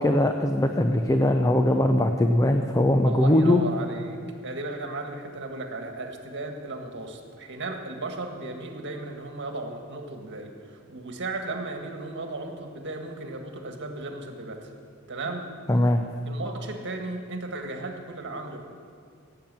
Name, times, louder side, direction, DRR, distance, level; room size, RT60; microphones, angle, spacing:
voice 1, 0.0-3.6 15.7-16.0, left 1 dB, 15° left, 5 dB, 0.6 m, -21 dB
voice 2, 3.0-14.7 15.1-15.5 16.2-18.6, right 2 dB, 55° right, 4 dB, 1.6 m, -35 dB
16.0 x 8.9 x 7.5 m, 2.3 s
head